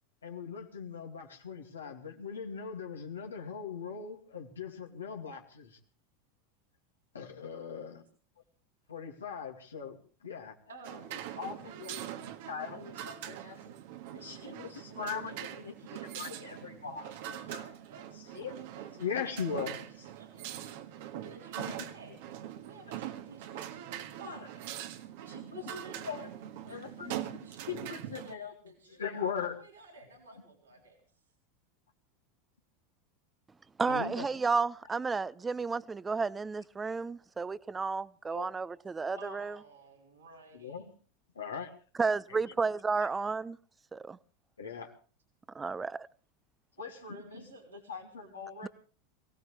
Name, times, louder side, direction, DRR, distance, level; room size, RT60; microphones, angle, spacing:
voice 1, 0.2-5.8 7.1-8.0 8.9-10.6 11.4-12.0 12.5-13.7 14.1-15.7 16.0-17.7 18.1-18.5 19.0-19.8 21.5-22.1 22.7-22.8 23.5-23.6 24.2-24.4 25.3-25.4 25.6-26.3 26.7-27.4 27.7-28.7 29.0-29.6 29.9-30.0 33.9-34.3 38.3-38.5 39.1-39.4 40.3-40.9 41.4-41.7 42.3-42.4 43.0-43.1 44.6-44.9 46.8-48.7, left 6 dB, 90° left, 2.5 m, -40 dB
voice 2, 10.7-13.9 14.1-20.5 21.2-22.2 22.6-24.6 25.2-26.3 26.6-31.2 39.2-40.9 46.8-48.7, right 6 dB, 85° right, 3.8 m, -54 dB
sound 1, 10.8-28.4, right 11 dB, 65° right, 1.6 m, -43 dB
voice 3, 33.8-39.6 42.0-43.6 43.9-44.2 45.5-46.1, right 4 dB, 20° right, 0.8 m, -32 dB
23.0 x 17.5 x 3.4 m
hypercardioid pair, 90°, 0 cm